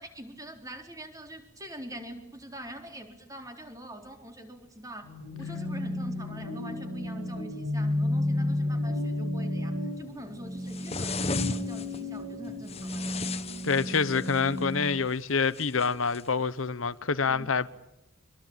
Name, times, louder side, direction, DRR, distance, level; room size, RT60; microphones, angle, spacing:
voice 1, 0.0-13.2 17.3-17.6, right 1 dB, 15° right, 4.2 m, -44 dB
sound 1, 5.0-15.0, left 1 dB, 80° right, 7.8 m, -32 dB
sound 2, 10.7-12.0 12.7-14.5 15.5-16.3, left 4 dB, 30° left, 1.3 m, -36 dB
voice 2, 13.6-17.7, left 5 dB, 75° left, 0.9 m, -27 dB
26.0 x 23.0 x 9.0 m
head